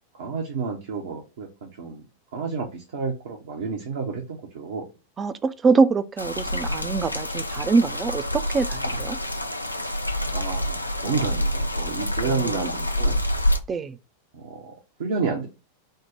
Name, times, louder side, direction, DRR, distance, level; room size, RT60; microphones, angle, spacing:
voice 1, 0.2-2.0 2.3-4.8 10.3-13.2 14.3-14.7 15.0-15.5, right 5 dB, 60° right, 0.8 m, -30 dB
voice 2, 5.2-8.2 8.5-9.2 12.2-12.5 13.7-13.9, right 4 dB, 20° right, 0.4 m, -23 dB
sound 1, 6.2-13.6, left 1 dB, 85° left, 0.4 m, -27 dB
4.4 x 2.1 x 4.7 m
figure-of-eight pair, 90°, 0 cm